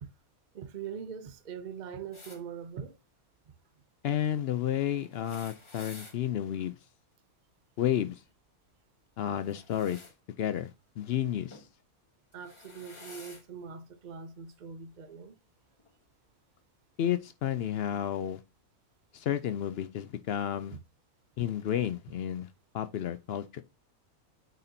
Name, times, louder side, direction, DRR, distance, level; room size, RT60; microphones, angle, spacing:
voice 1, 0.5-3.0 12.3-15.4 20.7-20.8, right 7 dB, 50° right, 0.5 m, -42 dB
sound 1, 2.1-2.4 5.0-6.2 9.4-10.1 11.5-11.7 12.3-13.4 14.5-14.6 15.8-15.9, left 2 dB, 25° left, 1.0 m, -50 dB
voice 2, 4.0-6.8 7.8-8.2 9.2-10.0 10.4-10.7 11.0-11.6 17.0-18.4 19.1-20.8 21.4-22.5 22.7-23.6, left 10 dB, 70° left, 0.6 m, -31 dB
9.1 x 4.2 x 2.7 m
omnidirectional pair, 1.5 m